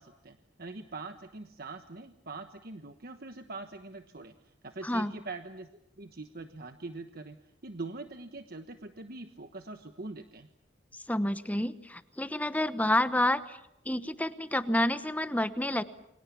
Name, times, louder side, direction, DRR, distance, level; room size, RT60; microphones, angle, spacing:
voice 1, 0.0-5.7 6.0-10.5, right 3 dB, 55° right, 8 dB, 1.3 m, -43 dB
voice 2, 11.1-13.6 13.8-15.8, left 1 dB, 10° left, 12 dB, 1.0 m, -29 dB
29.0 x 24.0 x 7.1 m, 0.83 s
head